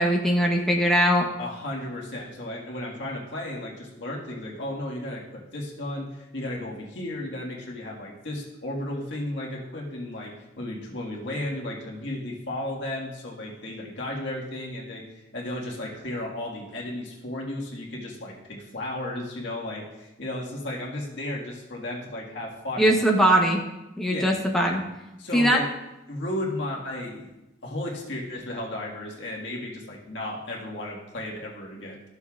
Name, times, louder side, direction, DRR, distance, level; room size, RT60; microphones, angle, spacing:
voice 1, 0.0-1.3 22.8-23.6 24.0-24.8 25.3-25.6, equal, ahead, -1 dB, 0.9 m, -21 dB
voice 2, 1.4-23.0 24.1-24.3 25.2-25.7 26.1-27.3 27.6-32.0, left 1 dB, 70° left, -2 dB, 1.7 m, -34 dB
13.5 x 6.7 x 2.4 m, 0.96 s
head